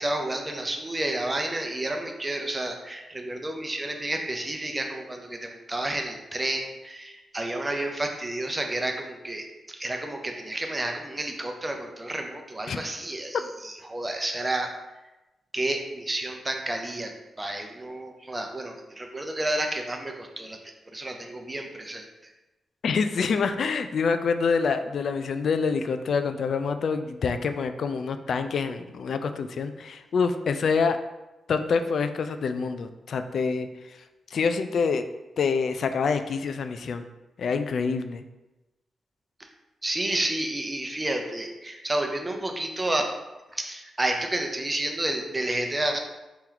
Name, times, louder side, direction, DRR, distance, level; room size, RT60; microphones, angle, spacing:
voice 1, 0.0-14.7 15.5-17.1 17.4-20.6 20.9-22.3 39.8-43.0 43.5-46.0, right 1 dB, 20° right, 3 dB, 0.6 m, -30 dB
voice 2, 22.8-31.0 31.5-34.0 34.3-35.1 35.4-37.1 37.4-38.2, left 5 dB, 65° left, 9 dB, 0.3 m, -26 dB
4.3 x 3.0 x 3.9 m, 1.0 s
cardioid pair, 95°, 0 cm